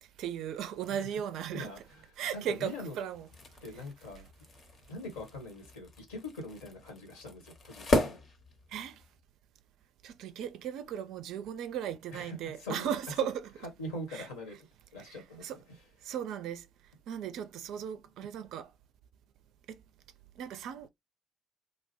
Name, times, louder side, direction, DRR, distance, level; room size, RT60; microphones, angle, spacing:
voice 1, 0.2-1.8 2.2-3.3 8.7-9.0 10.0-13.5 14.1-14.3 15.1-15.6 16.0-16.7 17.1-18.7 19.7-19.8 20.4-20.9, right 9 dB, 65° right, 0.4 m, -37 dB
voice 2, 1.5-2.1 2.3-3.0 3.6-4.3 4.9-8.2 12.1-12.9 13.8-14.6 14.9-15.6, left 1 dB, 75° left, 1.2 m, -42 dB
sound 1, 3.1-9.1, left 2 dB, 50° left, 0.8 m, -36 dB
2.8 x 2.1 x 3.0 m
figure-of-eight pair, 45°, 0 cm